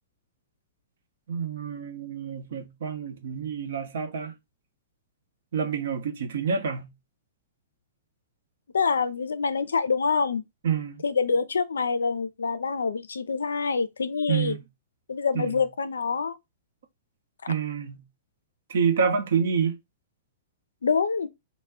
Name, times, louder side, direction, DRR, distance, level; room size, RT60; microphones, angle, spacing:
voice 1, 1.3-4.3 5.5-6.9 10.6-11.0 14.3-14.6 15.3-15.6 17.5-18.0 18.7-19.8, right 6 dB, 65° right, 0.7 m, -28 dB
voice 2, 8.7-10.4 11.0-14.6 15.1-16.4 20.8-21.3, left 5 dB, 80° left, 0.4 m, -26 dB
2.2 x 2.0 x 3.5 m
hypercardioid pair, 110°, 0 cm